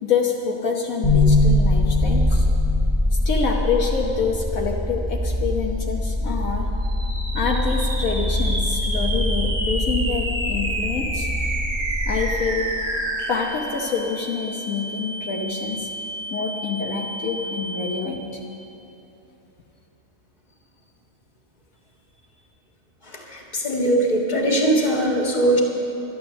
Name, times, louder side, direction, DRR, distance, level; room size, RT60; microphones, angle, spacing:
voice 1, 0.0-2.5 3.2-6.7 7.3-11.3 12.1-12.7 13.3-15.9 16.3-18.3, left 5 dB, 75° left, 0 dB, 1.4 m, -26 dB
sound 1, 1.0-13.1, left 1 dB, ahead, 2.7 m, -23 dB
sound 2, 6.8-18.4, right 1 dB, 50° right, 1.6 m, -30 dB
voice 2, 23.0-25.6, right 1 dB, 30° left, -1 dB, 2.0 m, -21 dB
12.0 x 11.5 x 7.1 m, 2.9 s
omnidirectional pair, 1.5 m